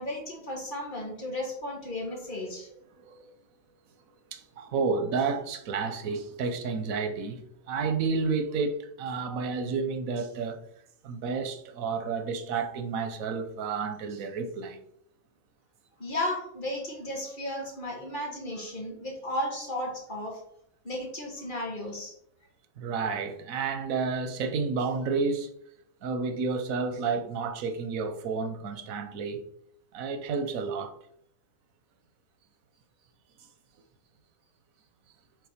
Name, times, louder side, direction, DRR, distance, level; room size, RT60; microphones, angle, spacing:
voice 1, 0.0-2.7 16.0-20.4 20.8-22.1, left 1 dB, 40° left, 1.7 m, -34 dB
voice 2, 3.0-3.3 4.3-10.6 11.0-14.8 22.8-25.5 26.0-29.4 29.9-31.0, right 4 dB, 90° right, 1.2 m, -31 dB
5.8 x 3.6 x 4.9 m
omnidirectional pair, 1.4 m